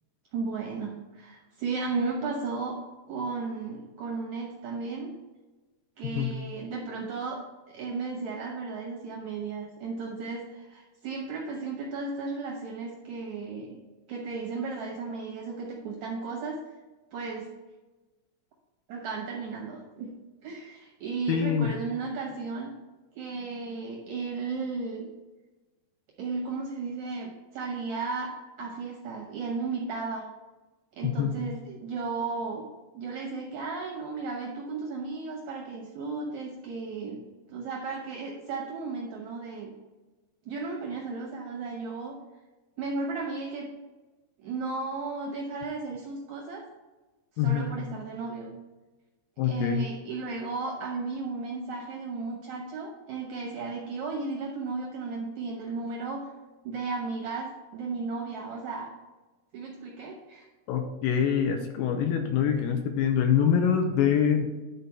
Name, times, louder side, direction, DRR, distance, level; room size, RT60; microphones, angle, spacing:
voice 1, 0.3-2.8 3.1-5.1 6.0-7.4 7.7-13.8 14.1-16.6 17.1-17.5 18.9-20.1 20.4-22.7 23.1-25.1 26.2-28.3 28.6-30.3 30.9-32.6 32.9-37.2 37.5-39.7 40.4-42.2 42.8-43.7 44.4-46.6 47.4-48.5 49.4-56.3 56.6-58.9 59.5-60.5, right 4 dB, 75° right, -1 dB, 1.7 m, -34 dB
voice 2, 21.3-21.7 31.0-31.4 47.4-47.7 49.4-49.9 60.7-64.5, left 8 dB, 80° left, 5 dB, 2.1 m, -25 dB
10.5 x 4.3 x 4.5 m, 1.2 s
omnidirectional pair, 4.7 m